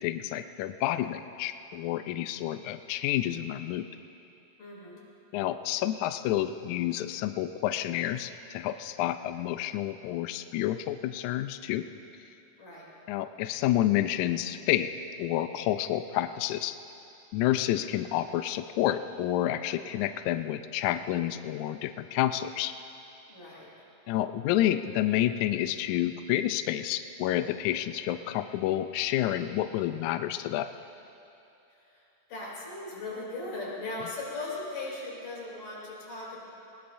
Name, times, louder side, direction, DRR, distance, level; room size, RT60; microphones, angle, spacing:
voice 1, 0.0-3.9 5.3-11.8 13.1-14.9 15.2-16.7 17.3-22.7 24.1-30.7, left 13 dB, 85° left, 10 dB, 1.7 m, -29 dB
voice 2, 4.6-5.0 12.6-12.9 23.3-23.7 31.7-36.4, left 2 dB, 65° left, -5 dB, 4.6 m, -38 dB
20.5 x 20.0 x 2.6 m, 2.7 s
omnidirectional pair, 3.9 m